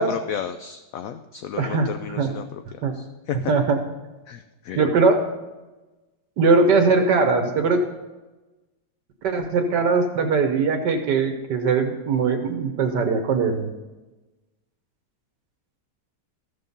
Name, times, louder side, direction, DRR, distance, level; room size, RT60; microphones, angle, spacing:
voice 1, 0.0-2.6 2.9-3.5 4.3-4.8, left 8 dB, 70° left, 9 dB, 0.8 m, -33 dB
voice 2, 1.6-1.9 2.2-2.3 2.8-2.9 3.5-3.8 4.7-5.2 6.4-7.8 9.2-13.7, right 4 dB, 75° right, 5 dB, 1.6 m, -20 dB
14.5 x 6.8 x 5.3 m, 1.1 s
omnidirectional pair, 1.8 m